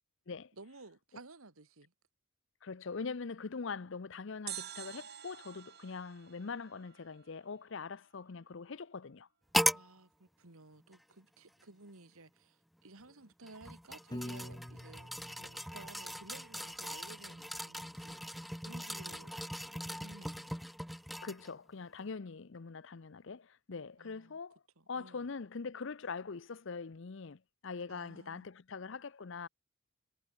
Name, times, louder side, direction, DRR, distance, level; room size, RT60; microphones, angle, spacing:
voice 1, 0.5-1.9 9.7-15.1 15.4-18.2 18.6-19.3 19.7-20.5 24.0-24.4 24.8-25.3 27.9-28.5, right 3 dB, 85° right, 2.3 m, -55 dB
voice 2, 2.6-9.3 21.2-24.6 24.9-29.5, left 4 dB, 60° left, 0.6 m, -43 dB
sound 1, 4.5-7.5 7.8-7.9, right 12 dB, 50° right, 1.9 m, -48 dB
sound 2, 9.5-9.9 10.9-11.0 13.4-21.5 22.0-22.1, equal, ahead, 0.5 m, -38 dB
Piano, 14.1-16.3, left 1 dB, 20° left, 1.2 m, -46 dB
head